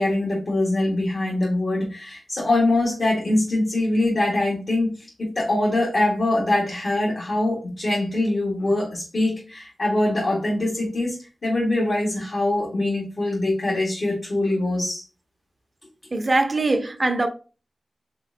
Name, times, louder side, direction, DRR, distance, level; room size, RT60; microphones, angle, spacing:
voice 1, 0.0-4.9 5.2-11.2 11.4-15.0, left 2 dB, 65° left, 1.7 m, -23 dB
voice 2, 16.1-17.3, right 2 dB, 45° right, 0.7 m, -22 dB
4.3 x 3.6 x 2.7 m
cardioid pair, 40°, 0 cm